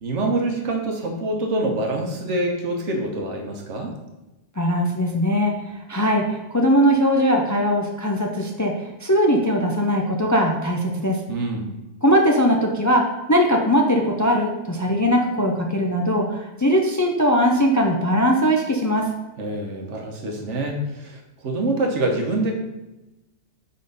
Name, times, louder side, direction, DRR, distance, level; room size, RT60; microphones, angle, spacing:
voice 1, 0.0-3.9 11.3-11.7 19.4-22.5, right 2 dB, 85° right, 2 dB, 1.4 m, -25 dB
voice 2, 4.6-5.5 5.9-11.2 12.0-13.0 13.3-19.1, equal, 25° left, 1 dB, 0.4 m, -20 dB
5.1 x 4.3 x 5.4 m, 1.0 s
omnidirectional pair, 1.2 m